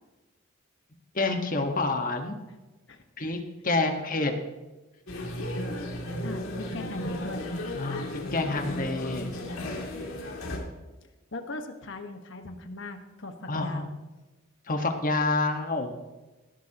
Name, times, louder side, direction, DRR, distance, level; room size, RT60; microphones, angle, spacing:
voice 1, 1.1-2.4 3.2-3.4 3.6-4.3 7.8-9.3 13.5-13.9 14.7-15.9, left 2 dB, 40° left, 5 dB, 1.5 m, -28 dB
sound 1, 5.1-10.6, left 1 dB, 75° left, 2.8 m, -34 dB
voice 2, 6.2-7.5 11.3-13.9, left 2 dB, 60° left, 6 dB, 1.4 m, -39 dB
18.0 x 12.5 x 3.0 m, 1.1 s
head